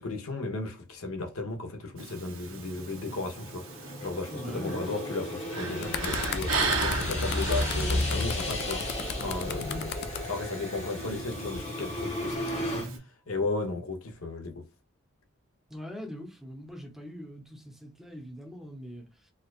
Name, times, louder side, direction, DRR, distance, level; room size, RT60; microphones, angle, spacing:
voice 1, 0.0-9.9 10.3-12.9 13.3-14.6, left 2 dB, 80° left, 0.9 m, -35 dB
sound 1, 2.0-13.0, right 1 dB, 65° right, 1.1 m, -34 dB
sound 2, 2.8-12.9, left 1 dB, 30° left, 0.9 m, -37 dB
voice 2, 4.3-5.0 9.7-9.9 15.7-19.3, equal, ahead, 0.8 m, -42 dB
sound 3, 5.6-10.2 11.1-11.3, left 6 dB, 50° left, 0.4 m, -36 dB
4.2 x 2.3 x 2.4 m
head